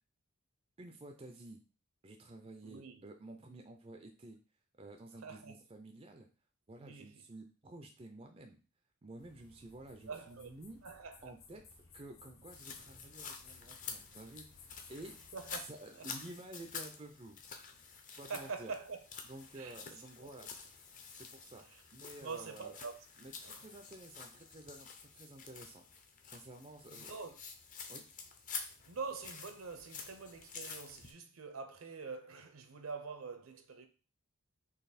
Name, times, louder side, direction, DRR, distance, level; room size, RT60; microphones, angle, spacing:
voice 1, 0.8-1.6 2.0-4.4 4.8-6.3 6.7-8.6 9.0-10.8 11.2-15.1 15.6-17.4 18.2-18.7 19.2-20.5 21.2-21.7 21.9-22.8 23.2-25.8 26.3-27.1 27.9-28.0, right 2 dB, 25° right, 0.4 m, -51 dB
voice 2, 2.6-3.0 5.2-5.5 6.8-7.2 10.1-10.5 10.8-11.3 15.3-15.7 15.9-16.0 18.3-19.0 19.6-19.8 20.2-20.3 22.2-22.9 23.4-23.6 27.0-27.3 28.9-33.9, right 4 dB, 65° right, 0.7 m, -45 dB
sound 1, 9.2-15.6, left 5 dB, 65° left, 0.8 m, -59 dB
sound 2, 12.5-31.1, left 5 dB, 35° left, 0.6 m, -49 dB
4.0 x 3.0 x 4.1 m
head